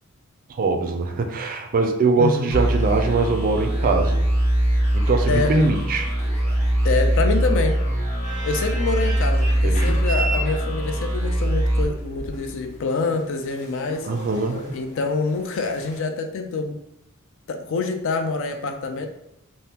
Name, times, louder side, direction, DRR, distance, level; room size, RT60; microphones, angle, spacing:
voice 1, 0.5-4.2 4.9-6.1 9.6-10.0 14.0-14.8, right 3 dB, 40° right, 4 dB, 0.4 m, -22 dB
voice 2, 2.2-2.5 5.3-5.6 6.8-7.8 8.4-14.1 14.7-16.8 17.5-19.1, left 3 dB, 65° left, 6 dB, 0.4 m, -26 dB
sound 1, 2.5-12.8, right 1 dB, 10° left, 1.0 m, -22 dB
sound 2, 7.7-16.0, right 1 dB, 35° left, 0.7 m, -36 dB
3.4 x 2.1 x 2.8 m, 0.80 s
head